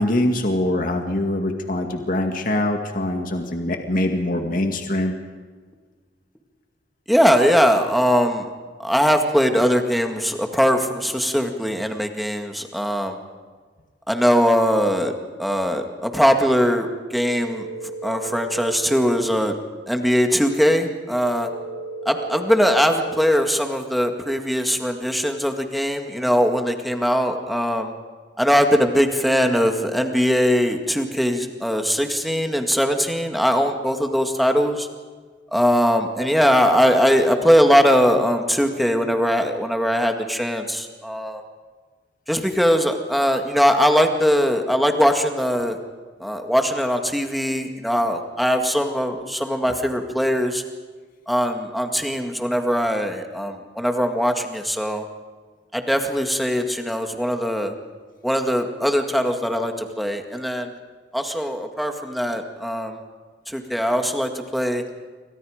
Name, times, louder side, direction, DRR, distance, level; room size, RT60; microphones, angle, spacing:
voice 1, 0.0-5.1, left 1 dB, 50° left, 4 dB, 2.2 m, -23 dB
voice 2, 7.1-8.5 8.8-13.2 14.1-15.1 15.4-17.7 18.0-19.6 19.9-21.5 22.1-27.9 28.4-34.9 35.5-41.4 42.3-45.8 46.2-50.6 51.3-55.0 55.7-57.7 58.2-60.7 61.1-63.0 63.5-64.8, equal, ahead, 4 dB, 2.0 m, -21 dB
sound 1, 17.2-19.3 21.2-23.3, right 2 dB, 80° left, 2.4 m, -34 dB
28.5 x 25.0 x 5.1 m, 1.5 s
head